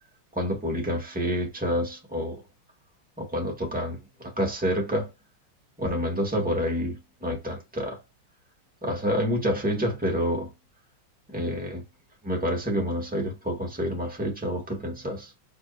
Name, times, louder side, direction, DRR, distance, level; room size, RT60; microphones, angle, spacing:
voice 1, 0.3-2.4 3.2-5.1 5.8-8.0 8.8-10.5 11.3-11.8 12.2-15.3, equal, 5° right, 1.6 m, -28 dB
5.2 x 3.8 x 2.6 m
omnidirectional pair, 2.4 m